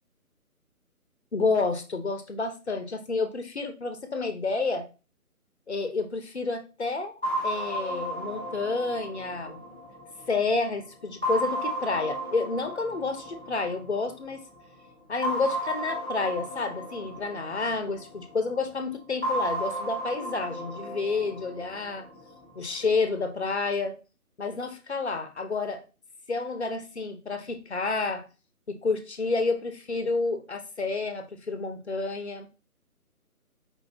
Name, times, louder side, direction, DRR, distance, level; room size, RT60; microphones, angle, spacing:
voice 1, 1.3-4.9 5.7-7.1 7.4-9.6 10.3-14.4 15.1-22.0 22.6-24.0 24.4-25.8 26.3-28.2 28.7-32.5, left 3 dB, 45° left, 6 dB, 0.8 m, -29 dB
sound 1, 7.2-10.6 11.2-14.1 15.2-18.3 19.2-22.3, right 1 dB, 5° right, 1.0 m, -34 dB
4.8 x 2.6 x 3.3 m, 0.31 s
figure-of-eight pair, 150°, 45 cm